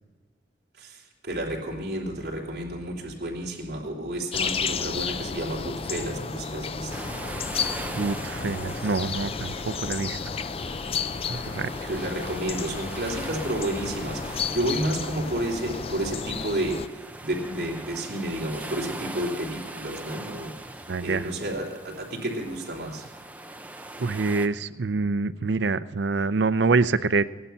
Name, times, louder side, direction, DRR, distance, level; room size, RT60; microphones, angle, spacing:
voice 1, 0.8-7.0 11.9-23.1, right 1 dB, 60° right, -2 dB, 3.4 m, -31 dB
sound 1, 4.3-16.9, left 5 dB, 35° left, 0.4 m, -32 dB
sound 2, 6.9-24.5, right 2 dB, 10° right, 0.7 m, -41 dB
voice 2, 8.0-10.2 11.3-11.7 20.9-21.3 24.0-27.3, right 4 dB, 85° right, 15 dB, 0.5 m, -26 dB
17.5 x 11.5 x 5.7 m, 1.4 s
head